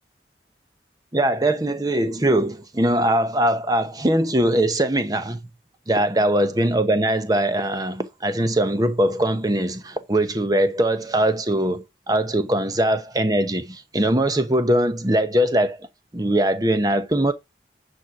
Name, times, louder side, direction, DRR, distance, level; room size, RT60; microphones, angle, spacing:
voice 1, 1.1-5.4 5.9-15.8 16.1-17.3, right 1 dB, 20° right, 0.9 m, -21 dB
9.2 x 4.6 x 4.7 m
head